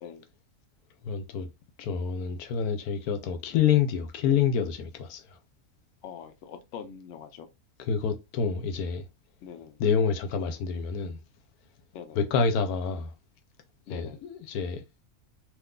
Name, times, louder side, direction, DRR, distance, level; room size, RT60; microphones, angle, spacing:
voice 1, 1.0-1.5 1.8-5.2 7.8-9.0 9.8-11.2 12.1-13.1 13.9-14.8, left 6 dB, 85° left, 1.1 m, -27 dB
voice 2, 6.0-7.5 9.4-9.8 11.9-12.2 13.9-14.3, left 7 dB, 65° left, 0.8 m, -43 dB
3.6 x 2.7 x 2.3 m
omnidirectional pair, 1.5 m